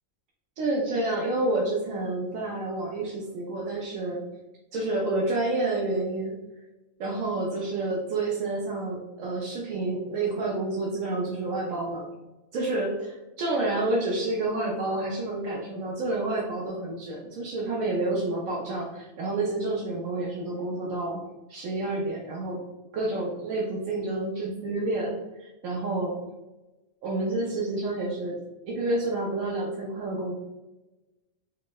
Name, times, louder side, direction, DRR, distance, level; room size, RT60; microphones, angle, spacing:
voice 1, 0.6-4.2 4.7-6.3 7.0-12.0 12.5-21.2 21.5-22.6 22.9-25.1 25.4-26.2 27.0-28.4 28.7-30.3, right 2 dB, 85° right, -3 dB, 1.0 m, -29 dB
4.3 x 2.0 x 2.2 m, 1.1 s
omnidirectional pair, 1.4 m